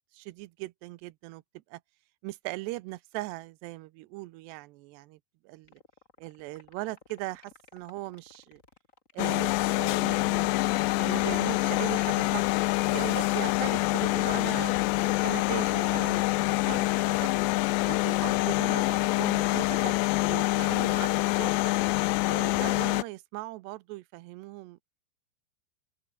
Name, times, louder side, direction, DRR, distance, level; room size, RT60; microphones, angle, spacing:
voice 1, 0.1-1.4 1.7-1.8 2.2-5.2 5.4-5.8 6.2-8.6 9.1-10.6 11.0-14.8 15.2-17.3 17.8-20.0 20.3-21.7 22.3-24.8, right 20 dB, 80° right, 2.8 m, -39 dB
sound 1, 5.6-21.6, left 3 dB, 20° left, 2.6 m, -54 dB
sound 2, 9.2-23.0, left 21 dB, 80° left, 2.8 m, -26 dB
open air
omnidirectional pair, 5.0 m